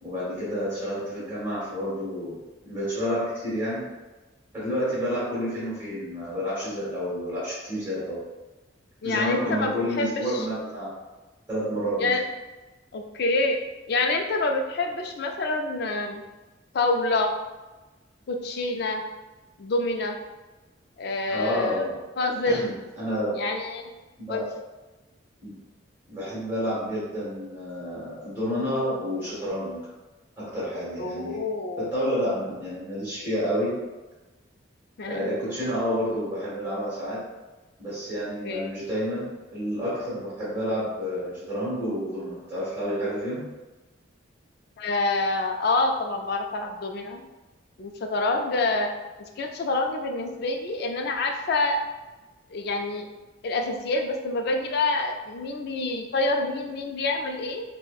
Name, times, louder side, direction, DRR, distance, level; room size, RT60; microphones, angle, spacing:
voice 1, 0.0-2.3 2.6-3.9 4.5-8.2 9.0-10.9 11.5-12.1 21.3-21.9 22.4-23.4 24.2-24.4 25.4-25.5 26.1-29.8 30.4-31.4 31.8-33.7 35.1-37.2 37.8-43.4, equal, 10° right, -10 dB, 1.4 m, -29 dB
voice 2, 9.0-10.5 12.0-12.2 12.9-13.6 13.9-16.2 16.7-17.3 18.3-19.0 19.6-20.2 21.0-21.8 22.2-22.7 23.3-23.9 24.3-24.5 31.0-31.9 35.0-35.3 38.4-38.7 44.8-47.2 47.8-48.9 49.4-51.8 52.5-53.1 53.4-57.6, left 2 dB, 55° left, 3 dB, 0.3 m, -27 dB
4.1 x 2.1 x 2.3 m, 1.1 s
head